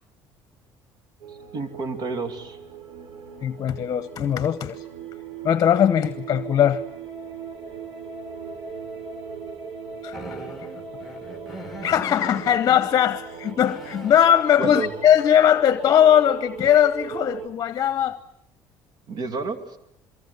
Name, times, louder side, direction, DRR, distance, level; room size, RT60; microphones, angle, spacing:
sound 1, 1.2-17.5, right 6 dB, 80° right, 3.8 m, -39 dB
voice 1, 1.3-2.6 14.6-14.9 19.1-19.8, right 4 dB, 60° right, 2.7 m, -30 dB
voice 2, 3.4-4.8 5.4-6.8 10.0-10.2 11.8-18.2, left 10 dB, 45° left, 1.0 m, -20 dB
sound 2, 10.1-12.8 13.3-14.4 17.2-17.3 17.9-18.1, equal, ahead, 3.3 m, -40 dB
27.0 x 23.5 x 8.3 m
cardioid pair, 110°, 8 cm